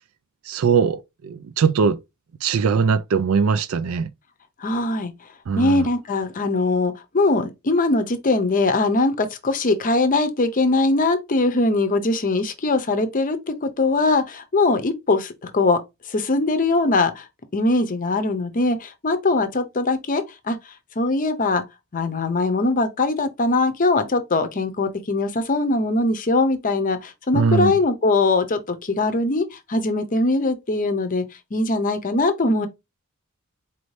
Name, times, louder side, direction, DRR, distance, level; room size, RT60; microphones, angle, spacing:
voice 1, 0.5-2.0 2.4-4.1 5.5-5.9 27.3-27.7, right 5 dB, 70° right, 0.4 m, -20 dB
voice 2, 4.6-5.1 5.6-15.8 16.1-17.3 17.5-20.6 21.0-21.6 21.9-31.2 31.5-32.7, left 2 dB, 40° left, 0.6 m, -21 dB
4.3 x 2.7 x 3.1 m
head